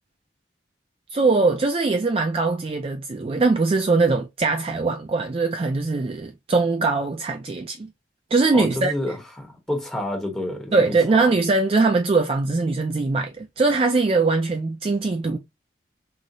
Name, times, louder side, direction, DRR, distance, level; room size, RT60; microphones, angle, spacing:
voice 1, 1.1-7.9 8.3-8.9 10.7-15.4, right 3 dB, 30° right, 0.3 m, -21 dB
voice 2, 8.5-10.8 11.1-11.3, left 1 dB, 5° left, 0.9 m, -29 dB
3.9 x 2.0 x 2.7 m
head